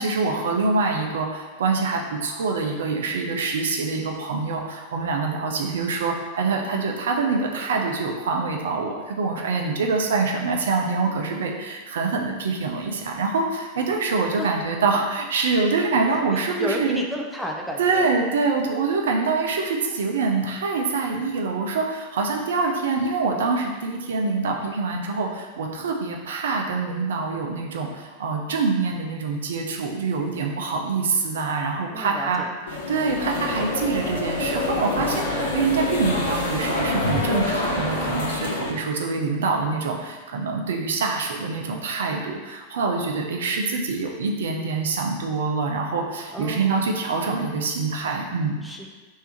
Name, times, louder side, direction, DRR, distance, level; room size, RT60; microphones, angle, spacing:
voice 1, 0.0-17.0 17.8-32.4 32.9-48.6, right 4 dB, 60° right, 1 dB, 0.5 m, -25 dB
voice 2, 16.1-18.1 31.9-32.5 46.3-46.9 48.6-48.9, equal, ahead, -1 dB, 0.5 m, -32 dB
sound 1, 32.7-38.7, left 2 dB, 60° left, 1.0 m, -26 dB
3.3 x 2.7 x 4.5 m, 1.3 s
figure-of-eight pair, 90°, 0 cm